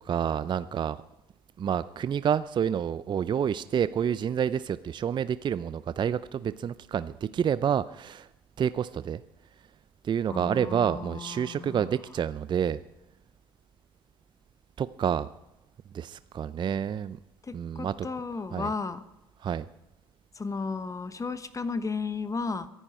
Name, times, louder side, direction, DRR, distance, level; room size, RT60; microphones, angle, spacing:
voice 1, 0.0-1.0 1.6-8.3 8.6-9.2 10.0-12.8 14.8-15.3 15.9-17.2 17.5-18.1 18.5-18.7 19.4-19.7, right 8 dB, 40° right, 15 dB, 0.5 m, -28 dB
voice 2, 10.3-11.9 17.4-19.0 20.3-22.7, left 4 dB, 25° left, 12 dB, 1.2 m, -34 dB
23.0 x 11.0 x 4.3 m, 0.92 s
hypercardioid pair, 65°, 12 cm